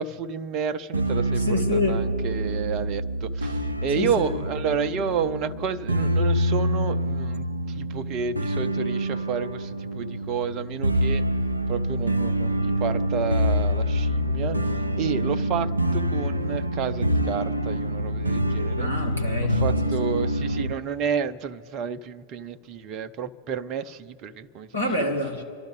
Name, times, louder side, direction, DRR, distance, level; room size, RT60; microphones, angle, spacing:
voice 1, 0.0-11.2 11.7-14.6 15.0-18.9 19.4-24.8, right 6 dB, 35° right, 0.6 m, -30 dB
sound 1, 0.9-20.7, right 1 dB, 85° right, 0.5 m, -26 dB
voice 2, 1.5-2.0 4.0-4.3 18.8-19.6 24.7-25.4, left 3 dB, 85° left, 2.1 m, -26 dB
27.5 x 11.5 x 3.6 m
figure-of-eight pair, 90°, 0 cm